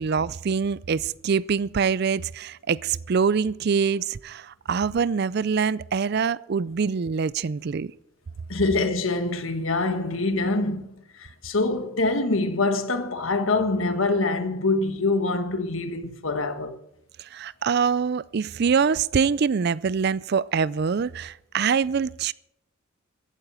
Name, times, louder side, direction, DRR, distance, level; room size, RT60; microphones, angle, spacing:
voice 1, 0.0-7.9 17.2-22.3, right 6 dB, 50° right, 0.4 m, -24 dB
voice 2, 8.5-10.9 11.1-16.8, left 3 dB, 80° left, 1.5 m, -25 dB
15.0 x 9.0 x 7.1 m
head